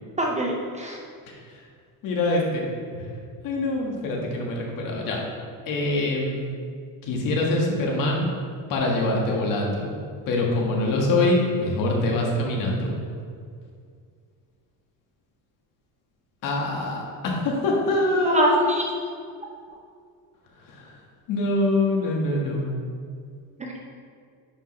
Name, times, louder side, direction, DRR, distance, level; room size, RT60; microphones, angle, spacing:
voice 1, 0.2-1.0 18.2-18.8 23.6-23.9, right 1 dB, 20° right, 0 dB, 0.5 m, -24 dB
voice 2, 2.0-2.6 2.9-3.1 3.4-5.2 5.7-6.4 7.0-8.3 8.7-9.9 10.3-12.9 16.4-18.6 20.7-21.0 21.3-22.7, left 2 dB, 60° left, -1 dB, 1.7 m, -24 dB
10.0 x 5.3 x 3.2 m, 2.1 s
cardioid pair, 165°, 37 cm